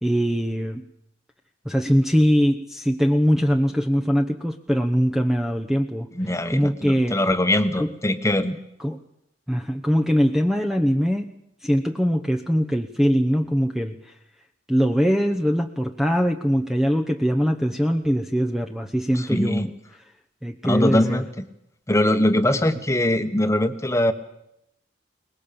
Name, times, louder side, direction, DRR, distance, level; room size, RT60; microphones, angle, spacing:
voice 1, 0.0-0.8 1.6-6.1 6.5-7.2 7.8-7.9 8.8-9.0 9.5-11.3 11.6-14.0 14.7-19.7 20.4-21.2, equal, ahead, 6 dB, 0.9 m, -22 dB
voice 2, 6.1-8.6 19.1-19.7 20.6-21.3 21.9-24.1, left 1 dB, 15° left, 9 dB, 1.3 m, -22 dB
23.0 x 20.5 x 7.0 m, 0.79 s
head